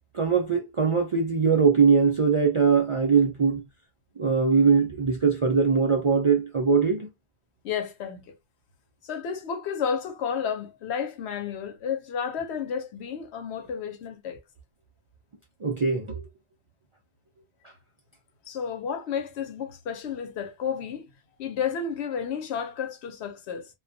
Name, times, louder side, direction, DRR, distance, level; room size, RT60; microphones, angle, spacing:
voice 1, 0.1-3.6 4.2-7.1 15.6-16.2, right 5 dB, 50° right, 0.4 m, -21 dB
voice 2, 7.6-8.3 9.0-14.4 18.5-21.0 21.4-23.7, left 7 dB, 85° left, 0.9 m, -31 dB
2.2 x 2.2 x 2.6 m
omnidirectional pair, 1.1 m